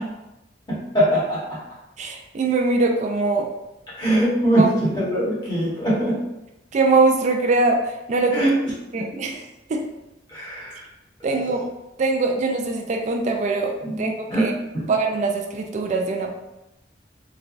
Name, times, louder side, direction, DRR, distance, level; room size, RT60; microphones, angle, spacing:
voice 1, 0.7-1.4 3.9-6.2 8.3-8.5 10.3-10.8 13.8-14.4 14.7-14.8, right 1 dB, 25° left, -9 dB, 1.2 m, -22 dB
voice 2, 2.0-3.5 4.6-4.7 6.7-8.5 8.9-9.4 9.7-9.9 11.2-11.7 12.0-14.5 14.9-16.3, right 3 dB, 40° right, 3 dB, 0.3 m, -22 dB
3.2 x 2.2 x 2.5 m, 0.94 s
head